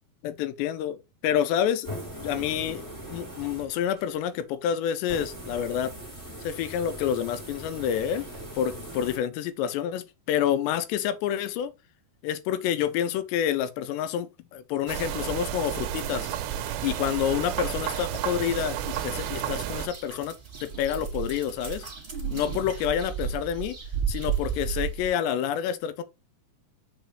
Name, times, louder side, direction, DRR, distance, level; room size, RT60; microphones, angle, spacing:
voice 1, 0.2-1.9 2.2-2.9 3.1-5.9 6.4-8.2 8.6-11.7 12.2-16.3 16.8-18.8 19.0-21.9 22.3-23.8 24.1-26.0, left 9 dB, 80° left, 2.8 m, -28 dB
sound 1, 1.8-4.1 5.0-9.2, equal, 5° left, 3.2 m, -40 dB
sound 2, 14.9-25.1, right 7 dB, 15° right, 3.5 m, -35 dB
sound 3, 14.9-19.9, right 11 dB, 80° right, 2.9 m, -32 dB
7.1 x 5.9 x 3.3 m
omnidirectional pair, 5.3 m